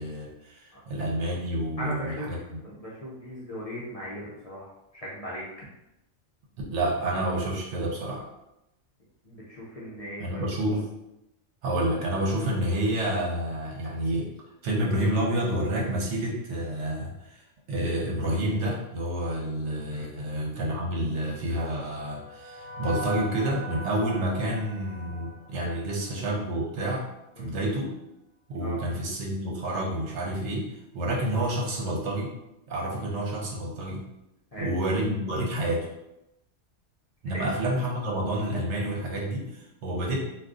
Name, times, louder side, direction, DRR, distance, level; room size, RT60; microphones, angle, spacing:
voice 1, 0.0-2.6 6.7-8.2 10.2-10.9 11.6-14.3 14.6-17.4 17.7-27.0 27.4-27.9 28.5-30.7 30.9-32.3 32.7-34.0 34.6-35.9 37.2-40.2, right 1 dB, 70° right, -2 dB, 1.0 m, -29 dB
voice 2, 1.8-5.7 9.3-10.4 19.9-20.1 25.6-25.7 27.4-27.5 28.6-28.8 32.9-33.0 34.5-34.7 37.3-37.5, equal, 45° left, -7 dB, 0.5 m, -38 dB
sound 1, 21.1-26.5, right 2 dB, 40° right, 1.3 m, -41 dB
2.6 x 2.3 x 3.6 m, 0.88 s
omnidirectional pair, 1.3 m